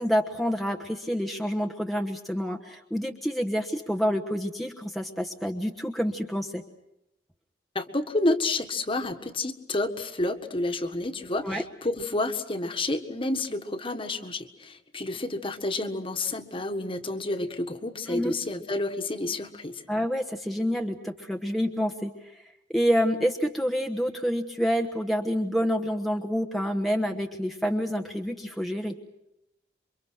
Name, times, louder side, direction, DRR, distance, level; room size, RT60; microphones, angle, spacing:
voice 1, 0.0-6.6 11.4-11.6 18.1-18.3 19.9-22.4 22.7-29.0, equal, ahead, 3 dB, 1.2 m, -28 dB
voice 2, 7.7-19.8, left 2 dB, 30° left, 7 dB, 1.7 m, -30 dB
28.5 x 24.5 x 6.4 m, 0.85 s
head